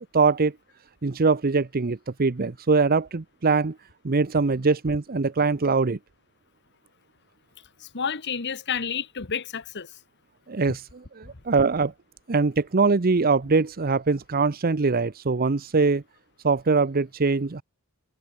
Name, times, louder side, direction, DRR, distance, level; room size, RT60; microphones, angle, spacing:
voice 1, 0.1-0.5 1.0-3.8 4.0-6.0 10.5-10.8 11.2-11.9 12.3-16.0 16.4-17.6, right 4 dB, 40° right, 0.7 m, -22 dB
voice 2, 7.8-9.9, left 6 dB, 50° left, 1.3 m, -30 dB
head